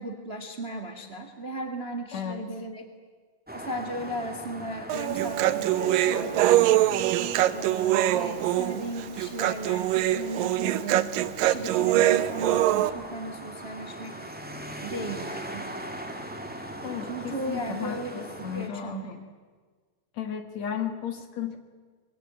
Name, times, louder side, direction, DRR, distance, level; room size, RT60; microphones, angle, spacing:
voice 1, 0.0-2.9 3.5-6.6 7.5-14.2 14.8-15.7 17.1-19.2, right 2 dB, 25° right, 6 dB, 1.5 m, -36 dB
voice 2, 2.1-2.5 16.8-19.2 20.1-21.6, left 9 dB, 60° left, 7 dB, 2.6 m, -34 dB
sound 1, 3.5-18.7, right 1 dB, 5° right, 1.2 m, -41 dB
Human voice, 4.9-12.9, right 13 dB, 80° right, 2.5 m, -23 dB
24.5 x 22.0 x 9.1 m, 1.5 s
omnidirectional pair, 4.0 m